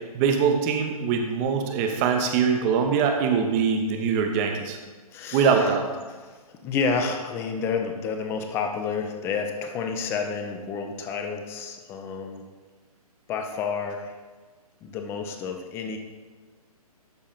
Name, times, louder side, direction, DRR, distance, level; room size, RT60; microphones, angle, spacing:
voice 1, 0.1-4.8 5.3-5.8, right 6 dB, 20° right, 4 dB, 0.7 m, -23 dB
voice 2, 5.1-5.7 6.6-12.4 13.3-14.1 14.8-16.0, left 5 dB, 10° left, 5 dB, 0.5 m, -30 dB
12.0 x 4.2 x 3.7 m, 1.4 s
figure-of-eight pair, 130°, 20 cm